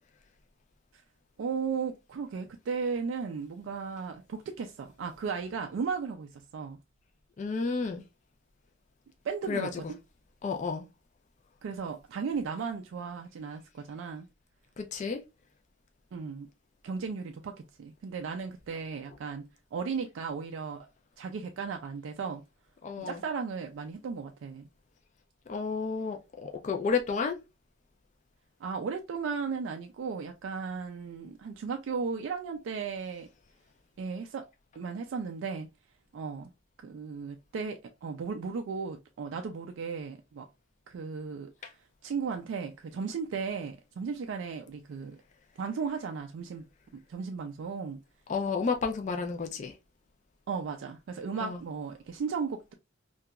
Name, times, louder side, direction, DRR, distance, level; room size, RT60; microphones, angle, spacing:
voice 1, 1.4-6.8 9.2-10.0 11.6-14.3 16.1-16.5 16.8-20.9 21.2-22.4 23.0-24.7 28.6-33.3 34.0-34.5 34.8-35.7 36.1-36.5 36.8-40.5 40.9-41.5 42.0-45.2 45.6-46.7 46.9-48.0 50.5-52.7, right 5 dB, 65° right, 0.3 m, -35 dB
voice 2, 7.4-8.0 9.5-9.7 10.4-10.9 14.8-15.2 22.8-23.2 25.5-27.4 48.3-49.7 51.4-51.6, left 5 dB, 35° left, 0.3 m, -31 dB
2.8 x 2.2 x 2.2 m
head